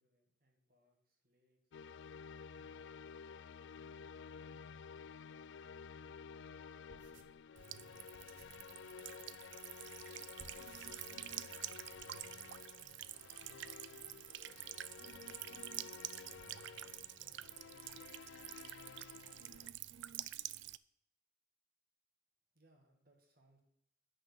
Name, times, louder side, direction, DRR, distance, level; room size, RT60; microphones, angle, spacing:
voice 1, 0.0-1.8 2.4-3.4 4.0-5.2 6.0-6.1 22.5-23.6, right 1 dB, 45° right, 1 dB, 1.9 m, -74 dB
sound 1, 1.7-19.7, left 6 dB, 65° left, 0.3 m, -53 dB
sound 2, 6.9-8.7 10.0-10.1 10.4-11.4 11.7-12.2, right 3 dB, 85° right, 1.2 m, -61 dB
Buzz / Water tap faucet / Trickle dribble, 7.6-20.8, right 14 dB, 65° right, 0.4 m, -48 dB
voice 2, 10.9-11.0, left 1 dB, 5° left, 0 dB, 2.3 m, -78 dB
11.0 x 6.2 x 6.6 m, 0.74 s
head